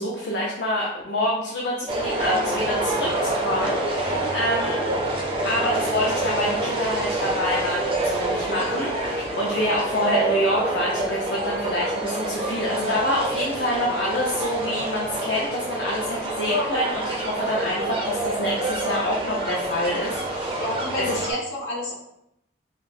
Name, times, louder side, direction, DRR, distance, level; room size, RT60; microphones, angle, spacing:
voice 1, 0.0-5.2 5.4-20.6 20.9-21.2, left 1 dB, 60° left, -4 dB, 0.5 m, -27 dB
sound 1, 1.9-21.3, right 1 dB, 30° right, 0.4 m, -27 dB
voice 2, 20.6-21.9, left 1 dB, 75° left, -6 dB, 1.3 m, -30 dB
5.2 x 2.0 x 2.6 m, 0.80 s
head